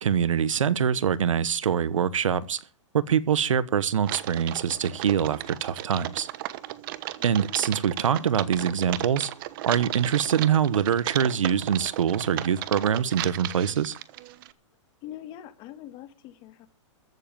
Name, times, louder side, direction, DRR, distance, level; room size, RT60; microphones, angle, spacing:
voice 1, 0.0-2.6 2.9-6.3 7.2-9.3 9.7-13.9, right 8 dB, 90° right, 1.2 m, -24 dB
Typing, 4.0-14.5, right 15 dB, 45° right, 1.1 m, -35 dB
voice 2, 7.2-7.8 15.0-16.7, left 12 dB, 30° left, 1.8 m, -44 dB
14.5 x 7.5 x 9.2 m
hypercardioid pair, 150°, 16 cm